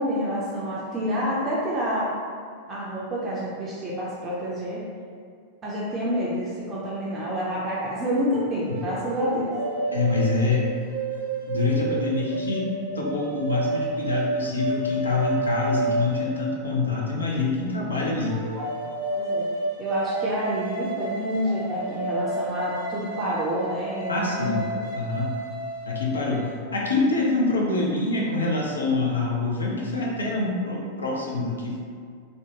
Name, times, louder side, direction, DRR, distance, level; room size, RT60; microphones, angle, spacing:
voice 1, 0.0-2.1 2.7-4.8 5.6-9.5 19.1-19.5 19.8-24.8, equal, 20° right, -7 dB, 0.4 m, -28 dB
sound 1, 8.7-17.1 18.2-26.4, right 2 dB, 70° right, 0.6 m, -30 dB
voice 2, 9.9-10.7 11.5-12.7 13.0-18.4 24.1-24.7 24.9-25.3 25.9-31.8, left 3 dB, 75° left, -3 dB, 0.5 m, -25 dB
2.6 x 2.1 x 2.8 m, 2.1 s
figure-of-eight pair, 90°, 0 cm